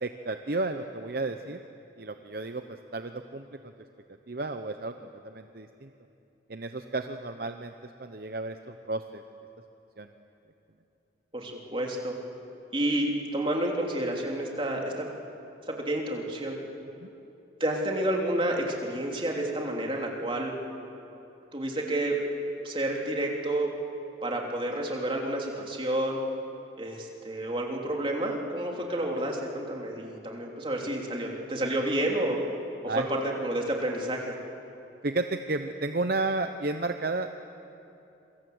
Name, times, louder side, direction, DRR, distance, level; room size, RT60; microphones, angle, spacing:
voice 1, 0.0-1.6 2.0-3.4 4.3-4.9 5.2-5.9 6.5-7.7 8.0-9.2 10.0-10.1 17.0-17.1 32.9-33.1 35.0-37.5, right 2 dB, 55° right, 7 dB, 0.8 m, -32 dB
voice 2, 11.3-12.2 12.7-15.1 15.7-16.6 17.6-20.5 21.5-22.2 22.6-23.7 24.2-26.2 26.8-32.4 32.8-34.3, right 1 dB, 25° right, 0 dB, 3.2 m, -30 dB
27.0 x 24.0 x 8.0 m, 2.9 s
head